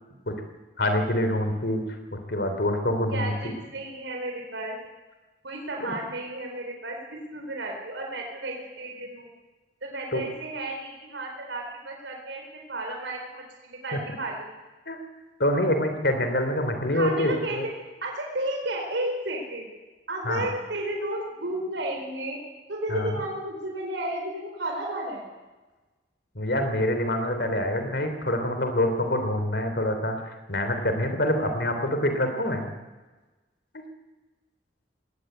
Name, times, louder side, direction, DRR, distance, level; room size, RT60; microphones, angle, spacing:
voice 1, 0.8-1.8 2.3-3.3 5.8-5.9 10.1-10.2 13.9-14.0 14.9-15.0 15.4-17.6 20.2-20.5 22.9-23.1 26.3-30.2 30.5-32.7, left 1 dB, 60° left, 6 dB, 3.5 m, -25 dB
voice 2, 3.1-4.8 5.4-9.3 9.8-14.5 16.9-17.7 18.0-19.7 20.1-22.4 22.7-25.2, right 1 dB, 75° right, 1 dB, 4.4 m, -33 dB
20.5 x 17.0 x 8.1 m, 1.2 s
head